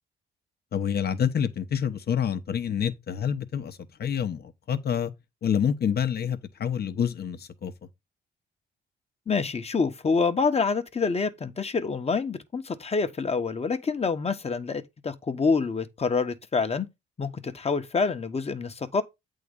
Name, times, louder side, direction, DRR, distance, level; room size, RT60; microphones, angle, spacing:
voice 1, 0.7-5.1 5.4-7.7, left 8 dB, 55° left, 1.1 m, -27 dB
voice 2, 9.3-16.9 17.2-19.0, left 4 dB, 30° left, 1.1 m, -27 dB
8.5 x 3.8 x 5.3 m
cardioid pair, 90°, 20 cm